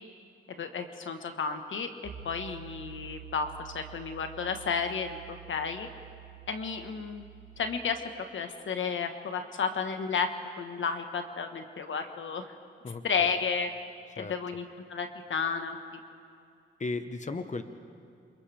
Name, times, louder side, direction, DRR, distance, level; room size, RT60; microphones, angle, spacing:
voice 1, 0.6-1.9 2.2-5.9 6.5-7.2 7.6-10.3 10.6-12.4 13.0-13.7 14.2-14.6 14.9-15.8, left 5 dB, 75° left, 6 dB, 1.4 m, -32 dB
Piano, 2.0-7.6, right 11 dB, 70° right, 3.4 m, -48 dB
voice 2, 12.8-13.4 14.1-14.3 16.8-17.6, left 3 dB, 35° left, 8 dB, 1.2 m, -36 dB
28.0 x 27.5 x 3.5 m, 2.4 s
cardioid pair, 60°, 20 cm